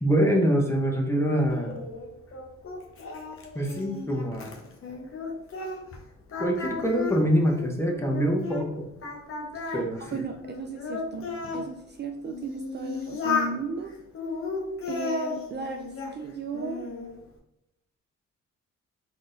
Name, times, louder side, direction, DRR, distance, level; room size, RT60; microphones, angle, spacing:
voice 1, 0.0-1.9 3.5-4.6 6.4-8.8 9.7-10.2, equal, 10° left, 1 dB, 0.8 m, -25 dB
Singing, 1.5-6.0 6.3-8.7 9.0-11.6 12.2-13.6 14.1-16.2 16.5-17.1, left 4 dB, 45° left, 0.9 m, -34 dB
voice 2, 10.1-13.9 14.9-16.9, right 4 dB, 35° right, 3 dB, 0.4 m, -36 dB
3.9 x 3.9 x 2.5 m, 0.82 s
cardioid pair, 90°, 30 cm